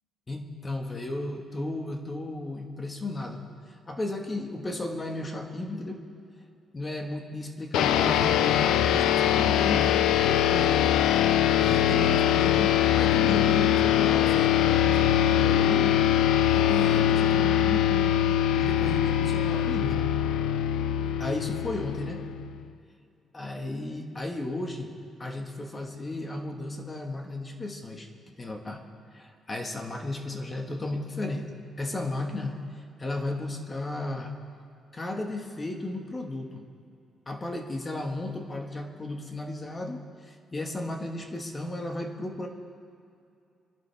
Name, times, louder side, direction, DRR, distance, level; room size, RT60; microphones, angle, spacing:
voice 1, 0.3-3.4 3.9-6.0 6.7-11.0 11.6-16.0 16.5-20.1 21.2-22.2 23.3-24.9 25.2-28.1 28.4-28.8 29.1-31.5 31.8-32.6 33.0-34.3 34.9-36.6 37.3-42.5, left 2 dB, 25° left, 3 dB, 1.6 m, -34 dB
sound 1, 7.7-22.5, left 11 dB, 85° left, 0.5 m, -23 dB
23.0 x 11.5 x 3.5 m, 2.6 s
cardioid pair, 90°, 0 cm